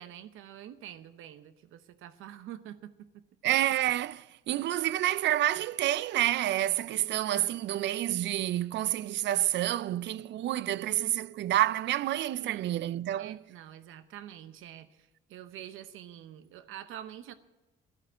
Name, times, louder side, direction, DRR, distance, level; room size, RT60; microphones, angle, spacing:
voice 1, 0.0-3.2 12.4-12.7 13.2-17.3, right 11 dB, 85° right, 0.8 m, -46 dB
voice 2, 3.4-13.4, right 13 dB, 60° right, 0.5 m, -29 dB
12.5 x 11.5 x 7.3 m
cardioid pair, 135°, 20 cm